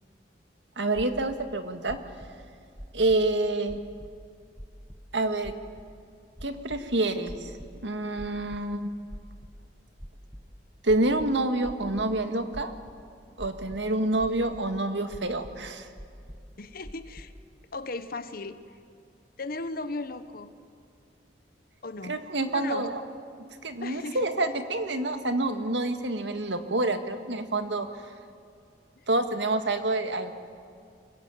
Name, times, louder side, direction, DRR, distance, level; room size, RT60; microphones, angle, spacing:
voice 1, 0.8-2.0 2.9-3.8 5.1-5.5 6.4-7.5 7.8-8.9 10.8-12.8 13.4-15.9 22.0-23.0 23.6-27.9 29.1-30.3, right 2 dB, 80° right, 8 dB, 1.9 m, -27 dB
sound 1, 0.9-1.4 1.9-2.3 2.8-3.3 3.7-4.1 4.6-5.0 5.4-5.8 6.3-6.8 7.3-7.8 8.2-8.6 9.1-9.6 10.0-10.4 10.9-12.1 12.5-13.0 13.4-13.9 14.2-14.6 15.1-15.5 16.0-16.5 16.8-17.3, equal, ahead, 1.3 m, -43 dB
voice 2, 16.6-17.3 17.7-18.6 19.4-20.5 21.8-22.2 22.5-22.9 23.8-24.2, left 3 dB, 55° left, 11 dB, 1.0 m, -36 dB
25.5 x 22.0 x 9.2 m, 2.3 s
head